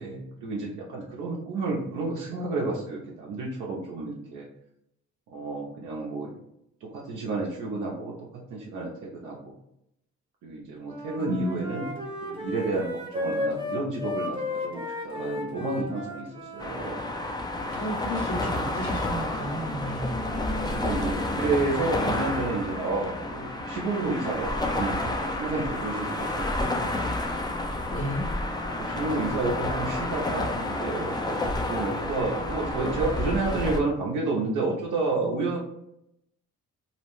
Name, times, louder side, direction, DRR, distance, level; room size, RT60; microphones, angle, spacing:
voice 1, 0.0-4.5 5.3-6.3 6.8-8.1 8.5-9.5 10.4-12.0 12.2-16.3 16.5-17.0 20.2-26.9 28.8-35.6, right 3 dB, 85° right, -4 dB, 0.6 m, -31 dB
Wind instrument woodwind instrument, 10.8-17.1, left 2 dB, 15° right, 0.7 m, -34 dB
voice 2, 11.2-11.6 17.7-20.2 27.8-28.2, equal, 80° left, -3 dB, 1.2 m, -32 dB
sound 1, 16.6-33.8, left 2 dB, 15° left, 0.4 m, -30 dB
2.8 x 2.0 x 3.0 m, 0.79 s
cardioid pair, 90°, 30 cm